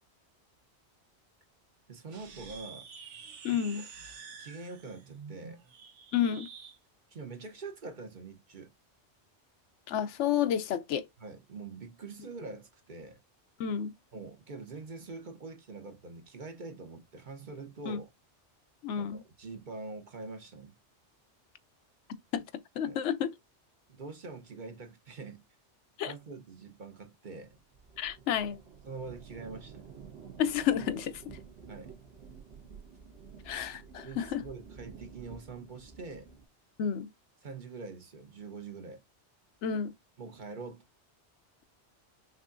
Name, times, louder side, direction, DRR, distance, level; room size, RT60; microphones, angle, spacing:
voice 1, 1.9-2.9 3.5-3.9 4.4-5.6 7.1-8.7 11.2-13.2 14.1-18.1 19.0-20.7 22.8-23.0 23.9-25.4 26.1-27.6 28.9-29.9 31.7-31.9 34.0-36.3 37.4-39.0 40.2-40.8, right 3 dB, 45° right, 1.0 m, -44 dB
sound 1, 2.1-6.8, right 6 dB, 80° right, 1.3 m, -49 dB
voice 2, 3.4-3.8 6.1-6.5 9.9-11.1 13.6-13.9 17.9-18.0 18.8-19.2 22.3-22.4 22.8-23.3 26.0-26.1 28.0-28.6 30.4-31.4 33.5-34.4 36.8-37.1 39.6-39.9, left 9 dB, 90° left, 1.0 m, -30 dB
sound 2, 27.4-36.4, right 6 dB, 60° right, 2.1 m, -50 dB
6.1 x 2.7 x 2.5 m
omnidirectional pair, 1.2 m